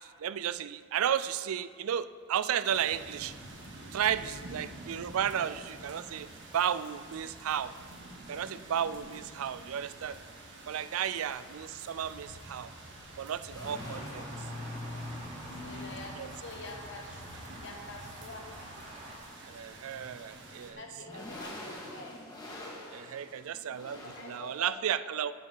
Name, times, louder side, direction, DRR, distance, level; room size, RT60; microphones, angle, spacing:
voice 1, 0.0-3.4 3.9-7.7 8.3-10.2 10.7-12.7 13.2-14.3 16.2-16.3 19.5-20.8 22.9-25.3, right 9 dB, 85° right, 15 dB, 0.4 m, -33 dB
sound 1, 2.7-20.7, right 1 dB, 60° right, 1.5 m, -48 dB
sound 2, 10.5-24.7, left 1 dB, 20° left, 1.7 m, -46 dB
voice 2, 10.9-11.3 14.0-14.2 15.6-17.2 17.6-18.5 20.6-22.2 23.9-25.2, left 2 dB, 60° left, 1 dB, 1.6 m, -46 dB
sound 3, 13.6-19.2, right 1 dB, 35° right, 2.2 m, -48 dB
7.8 x 7.7 x 6.8 m, 2.1 s
head